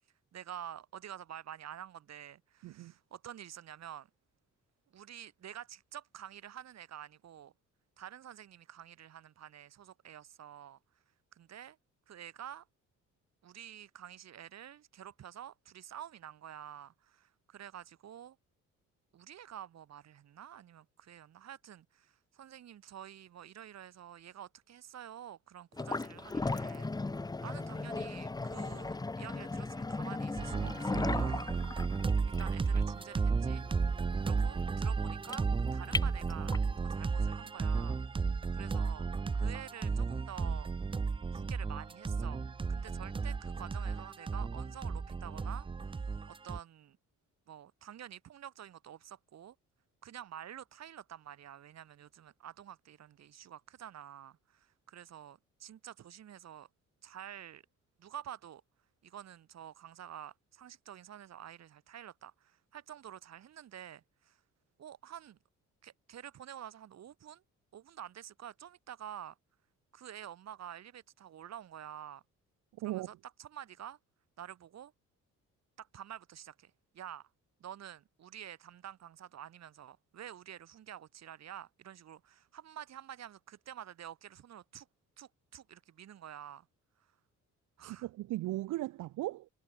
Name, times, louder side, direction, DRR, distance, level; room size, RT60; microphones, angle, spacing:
voice 1, 0.3-4.1 4.9-7.5 8.0-10.8 11.3-11.8 12.1-12.7 13.4-18.4 19.1-26.9 27.4-31.5 32.3-33.6 34.2-35.5 35.7-38.0 38.5-39.1 39.3-40.7 41.3-45.7 46.3-47.0 47.5-49.6 50.0-56.7 57.0-57.6 58.0-58.6 59.0-64.4 64.8-65.4 65.8-67.4 67.7-69.4 69.9-72.2 72.8-74.0 74.4-74.9 75.8-77.3 77.6-84.9 85.2-86.7 87.8-88.1, right 10 dB, 60° right, 2.0 m, -49 dB
voice 2, 2.6-2.9 72.8-73.1 87.8-89.5, right 17 dB, 85° right, 0.9 m, -37 dB
sound 1, 25.7-36.8, left 3 dB, 15° left, 0.8 m, -37 dB
sound 2, 30.4-46.6, right 4 dB, 15° right, 0.5 m, -33 dB
cardioid pair, 90°, 30 cm